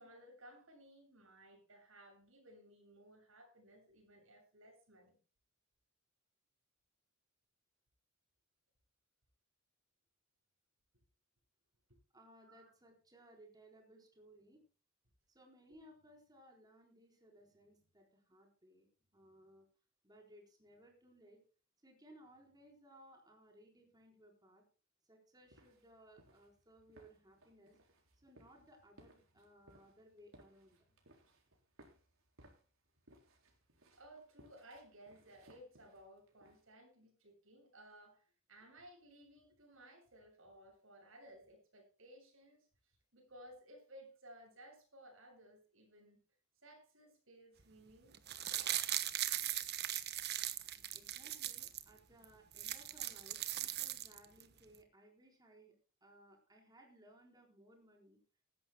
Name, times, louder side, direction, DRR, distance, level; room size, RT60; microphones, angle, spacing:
voice 1, 0.0-5.2 11.9-12.0 12.5-12.7 33.9-46.2 46.6-48.1 48.5-48.9, right 1 dB, 70° right, 2 dB, 7.2 m, -59 dB
voice 2, 12.1-14.6 15.3-18.9 19.1-19.7 20.0-21.4 21.8-24.6 25.0-27.8 28.2-31.0 50.9-55.7 56.0-58.2, right 1 dB, 20° right, 1 dB, 4.1 m, -62 dB
sound 1, 25.5-36.7, right 1 dB, 85° right, 4.1 m, -65 dB
sound 2, 48.1-51.8 52.2-52.3 52.5-54.4 54.7-54.8, right 12 dB, 50° right, 1.2 m, -39 dB
19.5 x 14.0 x 2.2 m, 0.35 s
head